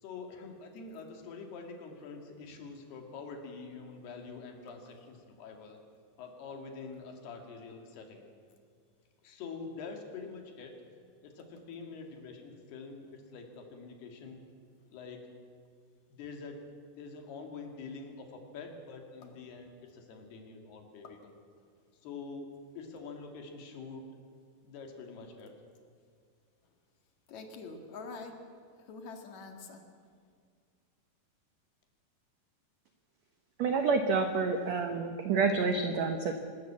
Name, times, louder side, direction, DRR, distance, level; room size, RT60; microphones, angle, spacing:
voice 1, 0.0-5.8 6.2-8.3 9.2-10.7 11.2-14.4 14.9-15.3 16.1-16.6 17.0-21.3 22.0-22.5 22.8-24.0 24.6-25.5, left 4 dB, 80° left, 3 dB, 4.2 m, -45 dB
voice 2, 27.3-28.4 28.9-29.8, left 4 dB, 55° left, 4 dB, 2.8 m, -45 dB
voice 3, 33.6-36.4, right 4 dB, 85° right, 7 dB, 1.5 m, -28 dB
24.5 x 13.0 x 8.5 m, 2.1 s
omnidirectional pair, 4.6 m